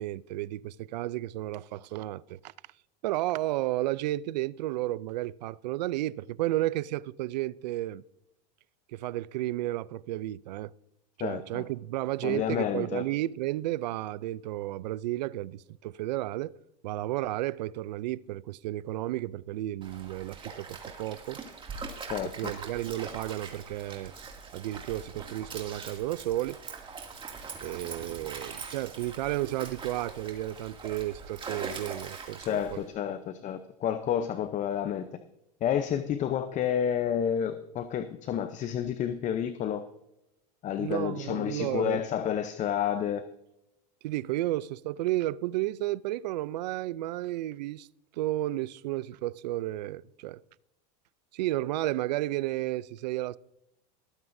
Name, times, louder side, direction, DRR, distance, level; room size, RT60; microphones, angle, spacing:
voice 1, 0.0-2.5 3.0-8.0 8.9-10.7 11.2-16.6 16.8-21.4 22.2-24.1 24.5-26.6 27.6-32.8 40.8-42.0 44.0-47.9 48.1-50.4 51.3-53.4, right 15 dB, 80° right, 0.5 m, -32 dB
voice 2, 11.2-11.6 12.2-13.0 22.1-22.5 32.4-35.1 35.6-39.8 40.6-43.2, left 9 dB, 35° left, 0.8 m, -30 dB
Stream, 19.8-32.9, right 5 dB, 25° right, 2.4 m, -42 dB
21.0 x 9.3 x 2.7 m
supercardioid pair, 115°, 21 cm